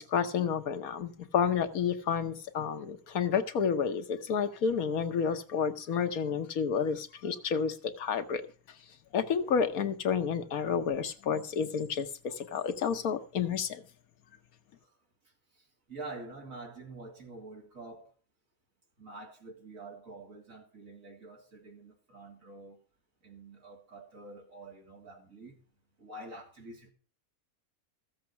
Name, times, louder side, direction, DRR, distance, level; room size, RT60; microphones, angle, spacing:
voice 1, 0.0-8.4 9.1-13.8, left 7 dB, 80° left, 1.5 m, -30 dB
voice 2, 15.9-18.1 19.0-22.8 23.2-25.6 26.0-26.9, right 2 dB, 65° right, 3.5 m, -47 dB
14.5 x 7.5 x 5.8 m
omnidirectional pair, 1.5 m